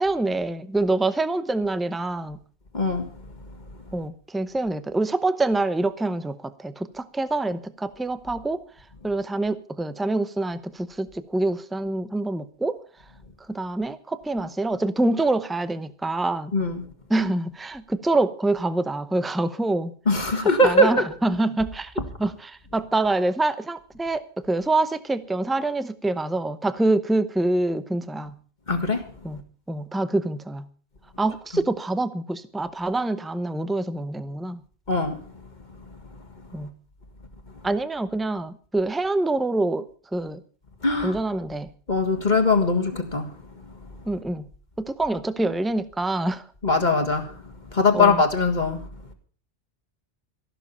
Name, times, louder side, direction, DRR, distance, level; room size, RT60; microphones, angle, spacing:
voice 1, 0.0-2.4 3.9-8.6 9.0-12.8 13.5-16.5 17.1-19.9 20.6-21.9 22.2-28.4 29.2-30.7 31.2-34.6 36.5-36.7 37.6-40.4 41.0-41.7 44.1-44.5 44.8-46.4 47.9-48.2, right 2 dB, ahead, 0.6 m, -26 dB
voice 2, 2.7-3.1 16.5-16.9 20.1-21.0 28.7-29.0 34.9-35.2 40.8-41.2 41.9-43.3 46.6-47.3 47.7-48.8, left 2 dB, 45° left, 1.9 m, -21 dB
14.0 x 12.0 x 5.5 m
omnidirectional pair, 1.1 m